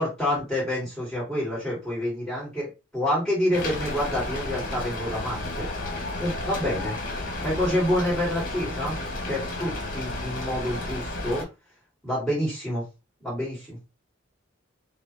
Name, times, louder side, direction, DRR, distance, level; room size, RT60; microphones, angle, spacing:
voice 1, 0.0-5.7 6.2-7.0 7.4-9.0 9.3-11.4 12.0-12.8 13.2-13.8, left 1 dB, ahead, -6 dB, 2.5 m, -28 dB
Rain, 3.5-11.4, left 2 dB, 45° left, 1.1 m, -32 dB
5.7 x 2.2 x 3.3 m, 0.27 s
head